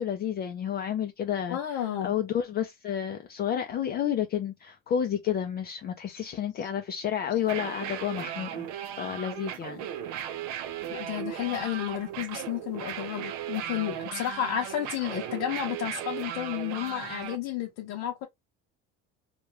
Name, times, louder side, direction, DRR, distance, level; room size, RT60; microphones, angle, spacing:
voice 1, 0.0-8.7 9.0-9.9, left 9 dB, 35° left, 0.4 m, -30 dB
voice 2, 1.5-2.2 6.1-6.2 6.6-6.7 7.3-7.4 10.9-18.3, left 11 dB, 65° left, 0.7 m, -32 dB
sound 1, 7.4-17.4, right 10 dB, 75° right, 0.5 m, -37 dB
2.3 x 2.2 x 2.8 m
cardioid pair, 120°, 29 cm